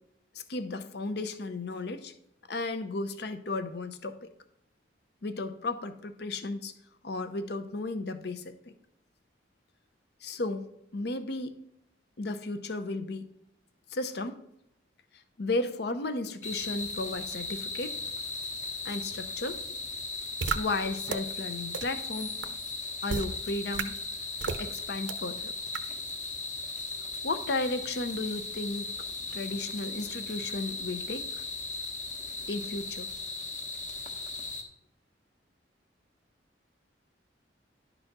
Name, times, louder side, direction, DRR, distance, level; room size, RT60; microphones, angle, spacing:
voice 1, 0.3-2.1 2.5-4.3 5.2-6.7 7.0-8.7 10.2-10.7 10.9-11.6 12.2-13.3 13.9-14.4 15.4-17.9 18.8-19.6 20.5-22.4 23.0-23.9 24.5-25.5 27.2-28.9 29.3-31.3 32.5-33.1, left 2 dB, 60° left, 10 dB, 0.7 m, -34 dB
sound 1, 16.4-34.6, left 3 dB, 40° left, 1.1 m, -37 dB
sound 2, 20.4-20.6 21.1-21.2 21.7-21.8 22.4-22.5 23.1-23.3 23.7-23.8 24.4-24.6 25.1-25.2 25.7-25.8, right 5 dB, 85° right, 0.7 m, -30 dB
11.0 x 4.0 x 5.9 m, 0.77 s
head